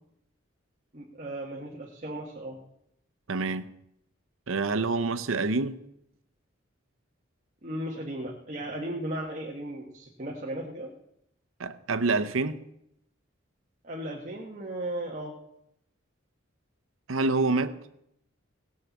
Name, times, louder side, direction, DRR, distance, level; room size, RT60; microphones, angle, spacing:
voice 1, 0.9-2.6 7.6-10.9 13.8-15.3, right 1 dB, 35° right, 1.3 m, -36 dB
voice 2, 3.3-3.7 4.5-5.8 11.6-12.6 17.1-17.8, right 3 dB, 80° right, 0.8 m, -27 dB
17.5 x 6.5 x 7.1 m
head